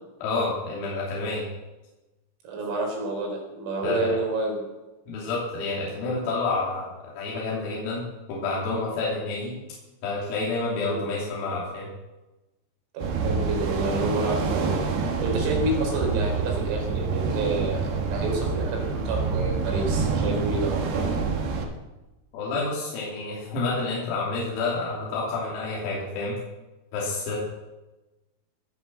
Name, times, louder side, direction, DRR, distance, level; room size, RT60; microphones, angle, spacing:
voice 1, 0.2-1.5 3.8-4.1 5.1-9.6 10.0-11.9 22.3-26.4 26.9-27.4, left 3 dB, 85° left, -5 dB, 5.6 m, -29 dB
voice 2, 2.4-4.6 10.8-11.1 12.9-21.1, right 2 dB, 80° right, 0 dB, 6.5 m, -29 dB
sound 1, 13.0-21.7, right 5 dB, 60° right, 3.0 m, -27 dB
21.0 x 7.1 x 7.7 m, 1.1 s
omnidirectional pair, 5.9 m